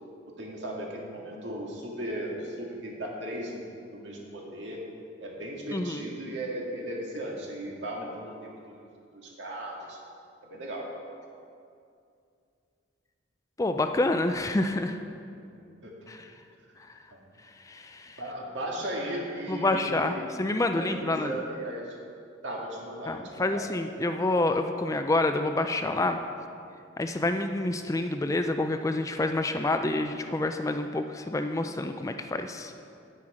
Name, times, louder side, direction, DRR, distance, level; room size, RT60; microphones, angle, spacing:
voice 1, 0.4-3.7 3.9-4.9 5.2-10.0 10.4-10.9 15.8-16.0 17.1-17.2 18.2-22.0 22.4-23.6, right 1 dB, 70° right, -2 dB, 1.9 m, -37 dB
voice 2, 5.7-6.1 13.6-15.0 16.1-16.2 17.7-18.2 19.5-21.3 23.1-26.2 27.0-32.7, left 2 dB, 15° left, 7 dB, 0.3 m, -28 dB
9.5 x 9.3 x 5.0 m, 2.5 s
head